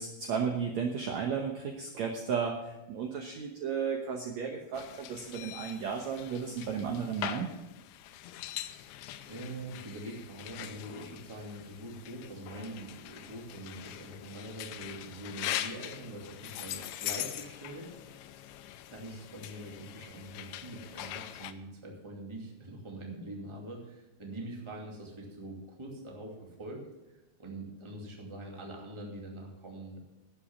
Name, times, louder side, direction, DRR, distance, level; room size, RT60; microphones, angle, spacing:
voice 1, 0.0-7.5, right 6 dB, 80° right, 3 dB, 1.6 m, -34 dB
sound 1, 4.7-21.5, left 13 dB, 80° left, 2.5 m, -42 dB
voice 2, 9.2-17.9 18.9-30.0, right 1 dB, 10° right, 0 dB, 1.5 m, -44 dB
12.0 x 8.4 x 7.2 m, 1.0 s
omnidirectional pair, 4.6 m